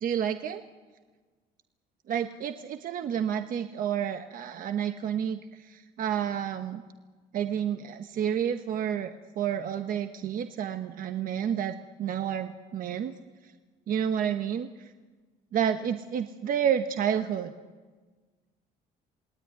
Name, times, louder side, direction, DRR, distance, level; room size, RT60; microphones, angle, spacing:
voice 1, 0.0-0.6 2.1-6.8 7.3-13.2 13.9-14.9 15.5-17.5, right 9 dB, 55° right, 8 dB, 1.1 m, -30 dB
27.5 x 19.0 x 9.6 m, 1.4 s
cardioid pair, 110°, 17 cm